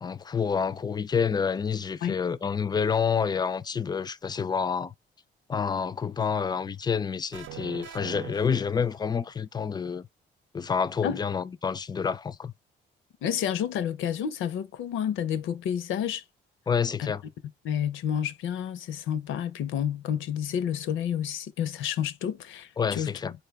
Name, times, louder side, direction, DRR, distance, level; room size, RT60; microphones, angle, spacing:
voice 1, 0.0-4.9 5.5-10.1 10.5-12.5 16.7-17.2 22.8-23.3, left 6 dB, 20° left, 0.3 m, -28 dB
sound 1, 7.3-9.3, right 13 dB, 75° right, 0.6 m, -43 dB
voice 2, 13.2-16.2 17.0-17.1 17.6-23.1, left 9 dB, 80° left, 0.6 m, -30 dB
4.3 x 2.2 x 3.5 m
cardioid pair, 90°, 20 cm